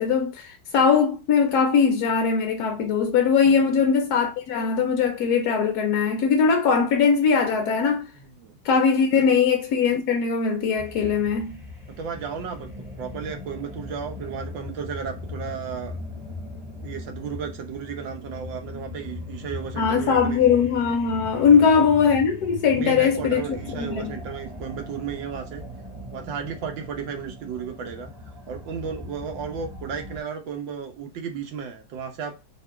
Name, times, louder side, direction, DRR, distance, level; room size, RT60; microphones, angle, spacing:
voice 1, 0.0-8.0 8.6-11.6 19.8-23.4 23.8-24.1, left 6 dB, 70° left, 0.9 m, -20 dB
voice 2, 3.4-3.9 8.1-8.5 12.0-12.7 13.0-16.0 16.7-20.4 21.4-21.9 22.7-25.6 26.1-28.1 28.5-32.3, right 6 dB, 70° right, 1.5 m, -34 dB
sound 1, 10.8-30.2, left 2 dB, 10° right, 1.9 m, -39 dB
3.3 x 2.9 x 4.3 m
omnidirectional pair, 2.3 m